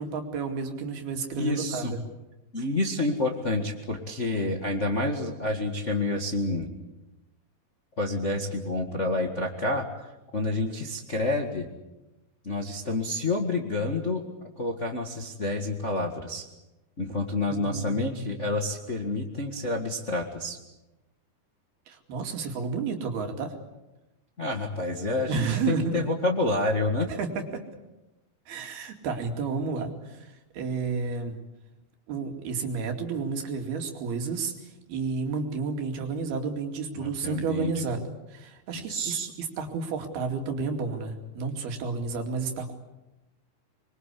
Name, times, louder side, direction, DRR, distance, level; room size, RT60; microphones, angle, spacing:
voice 1, 0.0-2.0 17.5-18.5 21.9-23.5 25.3-26.0 27.1-27.6 28.5-30.3 30.5-31.4 32.1-42.7, right 4 dB, 80° right, 4 dB, 4.5 m, -31 dB
voice 2, 1.3-1.9 2.5-6.7 8.0-9.9 10.3-11.7 12.4-14.2 14.6-16.4 17.0-20.6 24.4-27.1 36.9-37.7 38.9-39.3, left 2 dB, 35° left, 3 dB, 1.2 m, -28 dB
25.0 x 22.5 x 8.4 m, 1.0 s
omnidirectional pair, 4.4 m